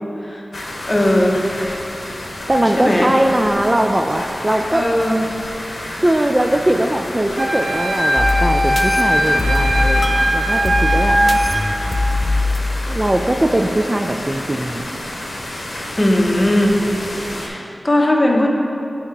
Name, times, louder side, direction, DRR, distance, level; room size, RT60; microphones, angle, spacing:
sound 1, 0.5-17.5, left 1 dB, 65° left, 0.9 m, -30 dB
voice 1, 0.9-1.7 2.8-3.1 4.7-5.3 16.0-16.8 17.3-18.5, left 1 dB, 30° left, -1 dB, 0.9 m, -17 dB
voice 2, 2.5-4.8 6.0-11.2 12.9-14.9, right 1 dB, 25° right, 4 dB, 0.3 m, -20 dB
Wind instrument woodwind instrument, 7.4-11.7, right 1 dB, 50° right, 0.7 m, -19 dB
sound 2, 8.2-13.8, left 2 dB, 50° left, 0.4 m, -22 dB
8.3 x 2.9 x 4.5 m, 2.9 s
cardioid pair, 50°, 0 cm